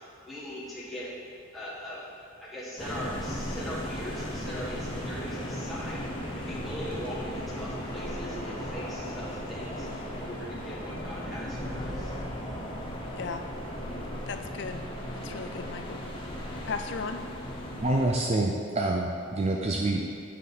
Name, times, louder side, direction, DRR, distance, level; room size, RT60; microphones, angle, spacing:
voice 1, 0.3-1.1 1.5-2.1 2.4-12.1, equal, ahead, -8 dB, 1.4 m, -40 dB
sound 1, 2.8-18.1, equal, 25° left, 0.9 m, -36 dB
voice 2, 14.3-14.8 15.1-16.0 16.7-17.2, left 5 dB, 55° left, 7 dB, 0.4 m, -36 dB
voice 3, 17.8-20.1, right 2 dB, 30° right, 0 dB, 0.4 m, -27 dB
8.7 x 5.4 x 4.0 m, 2.4 s
head